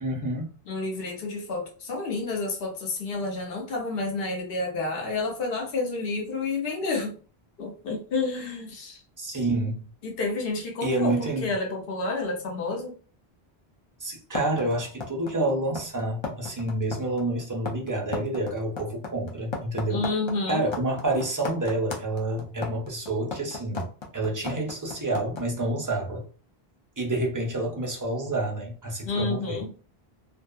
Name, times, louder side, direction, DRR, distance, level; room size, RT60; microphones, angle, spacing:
voice 1, 0.0-0.5 9.2-9.8 10.8-11.5 14.0-20.0 20.5-26.3 27.0-29.6, right 2 dB, 30° right, 0.4 m, -28 dB
voice 2, 0.7-7.2 7.6-9.0 10.0-12.9 19.9-20.7 29.0-29.7, left 3 dB, 65° left, 0.9 m, -30 dB
sound 1, 14.3-25.4, left 3 dB, 35° left, 0.5 m, -34 dB
2.6 x 2.3 x 2.2 m
omnidirectional pair, 1.0 m